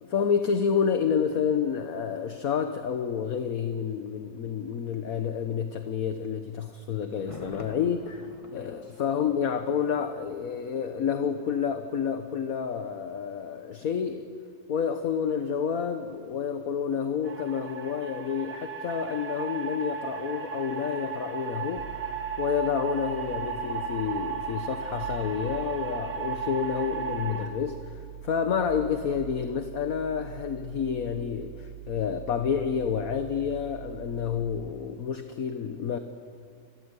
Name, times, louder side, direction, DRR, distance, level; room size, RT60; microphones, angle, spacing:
voice 1, 0.0-14.3 14.7-21.9 22.4-27.9 28.2-36.0, left 7 dB, 55° left, 8 dB, 1.5 m, -29 dB
Thunder, 7.1-11.0 11.3-11.4, left 2 dB, 20° left, 1.8 m, -48 dB
sound 1, 17.2-27.5, right 6 dB, 70° right, 3.2 m, -35 dB
sound 2, 21.8-34.7, right 10 dB, 85° right, 1.5 m, -44 dB
29.5 x 22.0 x 8.3 m, 2.3 s
omnidirectional pair, 1.9 m